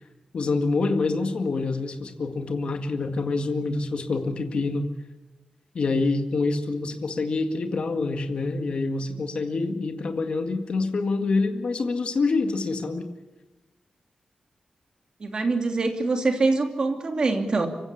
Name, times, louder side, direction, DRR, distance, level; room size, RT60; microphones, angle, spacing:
voice 1, 0.3-4.9 5.7-13.1, left 3 dB, 60° left, 5 dB, 1.9 m, -26 dB
voice 2, 15.2-17.7, right 3 dB, 40° right, 4 dB, 2.8 m, -24 dB
25.5 x 16.0 x 8.4 m, 1.0 s
wide cardioid pair, 180°, 2 cm